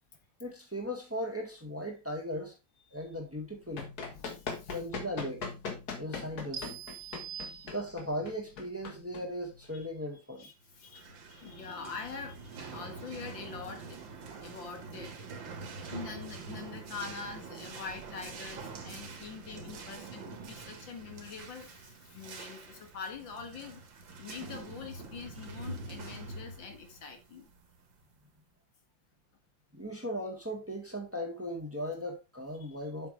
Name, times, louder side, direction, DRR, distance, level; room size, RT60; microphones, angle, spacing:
voice 1, 0.4-2.6 2.9-3.9 4.7-5.5 6.0-6.8 7.6-10.5 29.7-33.1, equal, 5° right, 1.8 m, -37 dB
Run, 3.4-9.8, left 5 dB, 55° left, 2.0 m, -41 dB
voice 2, 4.1-4.7 7.0-7.7 9.7-9.9 10.4-14.0 14.4-15.2 15.9-23.8 24.2-27.5 32.6-32.8, left 5 dB, 80° left, 2.3 m, -44 dB
sound 1, 6.5-8.3, right 8 dB, 55° right, 1.5 m, -44 dB
sound 2, 10.8-28.2, right 4 dB, 80° right, 2.3 m, -45 dB
7.9 x 6.6 x 3.3 m
omnidirectional pair, 2.0 m